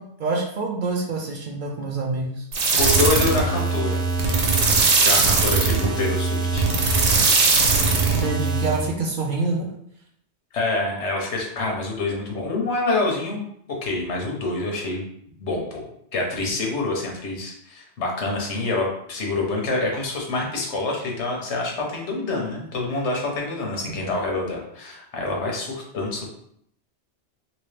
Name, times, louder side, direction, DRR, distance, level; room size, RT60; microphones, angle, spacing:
voice 1, 0.0-2.5 8.1-9.7, right 3 dB, 60° right, 1 dB, 0.6 m, -26 dB
sound 1, 2.5-8.8, right 4 dB, 85° right, 1.0 m, -20 dB
voice 2, 2.8-4.0 5.0-6.7 10.5-13.4 13.7-15.0 15.4-15.9 16.1-26.3, left 2 dB, 85° left, 0 dB, 1.2 m, -26 dB
3.0 x 2.8 x 3.2 m, 0.71 s
omnidirectional pair, 1.1 m